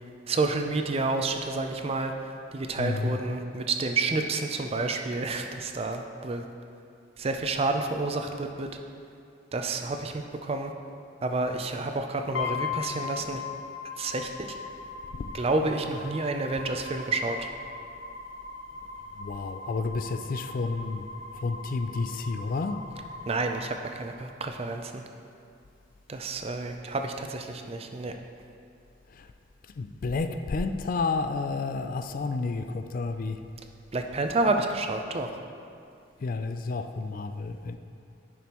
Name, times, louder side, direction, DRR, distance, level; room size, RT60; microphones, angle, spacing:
voice 1, 0.3-2.1 2.5-6.4 7.2-8.7 9.5-10.7 11.2-13.4 14.0-14.5 15.3-17.5 23.3-25.0 26.1-28.1 33.9-35.3, right 3 dB, 30° right, 5 dB, 0.4 m, -29 dB
voice 2, 2.8-3.2 15.1-15.4 19.2-21.1 21.3-22.8 29.1-29.3 29.8-33.4 36.2-37.8, left 3 dB, 45° left, 9 dB, 0.3 m, -31 dB
sound 1, 12.3-24.4, left 5 dB, 80° left, 0.9 m, -39 dB
10.0 x 6.1 x 3.0 m, 2.4 s
head